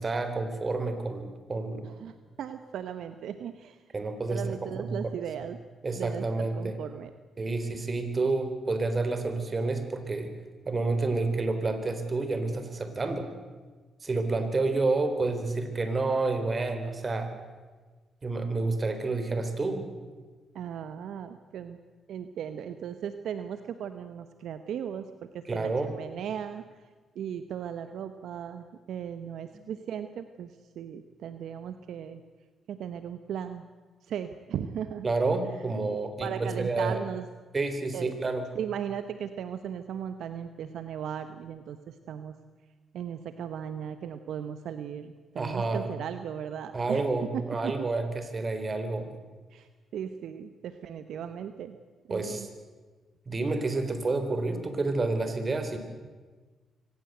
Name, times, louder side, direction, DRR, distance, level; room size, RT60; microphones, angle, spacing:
voice 1, 0.0-1.9 3.9-5.5 5.8-6.8 7.4-10.3 10.7-13.3 14.0-17.3 18.2-19.8 25.5-25.9 29.5-29.6 35.0-37.0 37.5-38.5 45.4-45.9 46.7-49.1 52.1-52.5 53.3-55.8, right 3 dB, 40° right, 8 dB, 4.0 m, -29 dB
voice 2, 1.8-3.8 4.3-5.6 6.0-7.1 20.5-21.8 22.1-25.1 25.3-26.6 27.1-32.2 32.7-33.6 34.1-35.1 36.2-37.2 37.9-38.1 38.5-42.4 42.9-47.0 47.6-47.9 49.5-51.8 52.1-52.5, right 8 dB, 75° right, 10 dB, 1.0 m, -37 dB
24.0 x 18.5 x 8.0 m, 1.4 s
supercardioid pair, 55°, 0 cm